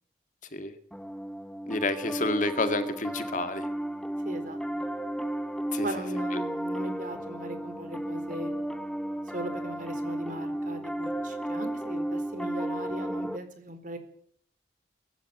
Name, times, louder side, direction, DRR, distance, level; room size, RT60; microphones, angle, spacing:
Piano, 0.9-13.4, right 1 dB, 5° left, 1.1 m, -33 dB
voice 1, 1.7-3.7 5.7-5.9 6.3-6.4, left 2 dB, 45° left, 9 dB, 2.1 m, -29 dB
voice 2, 4.2-4.9 5.8-8.5 9.3-14.0, right 1 dB, 50° right, 9 dB, 4.3 m, -39 dB
23.0 x 13.0 x 9.3 m, 0.63 s
head